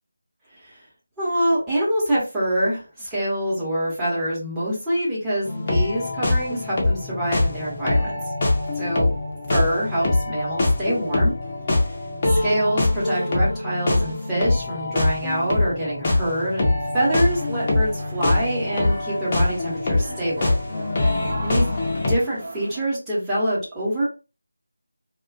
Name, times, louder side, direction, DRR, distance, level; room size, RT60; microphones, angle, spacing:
voice 1, 1.2-8.1 8.7-9.1 9.5-11.3 12.4-20.5 21.4-21.7 22.1-24.0, right 1 dB, 5° right, -8 dB, 0.9 m, -25 dB
sound 1, 5.4-22.2, left 2 dB, 25° left, 0.6 m, -23 dB
sound 2, 17.0-22.9, right 2 dB, 35° right, 0.6 m, -41 dB
2.4 x 2.3 x 2.4 m, 0.31 s
figure-of-eight pair, 160°, 0 cm